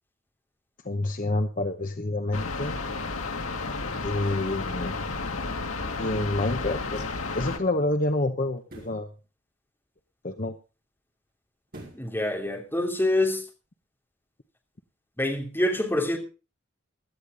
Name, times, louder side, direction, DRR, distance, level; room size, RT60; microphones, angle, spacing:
voice 1, 0.8-2.7 4.0-5.0 6.0-7.0 7.3-9.1 10.2-10.6, left 2 dB, 40° left, 0.9 m, -28 dB
sound 1, 2.3-7.6, left 3 dB, 90° left, 1.9 m, -32 dB
sound 2, 8.6-9.1 11.7-12.2 12.6-12.7, right 1 dB, 45° right, 5.8 m, -45 dB
voice 2, 11.9-13.4 15.2-16.2, left 1 dB, 10° left, 2.9 m, -26 dB
17.0 x 12.5 x 3.9 m
head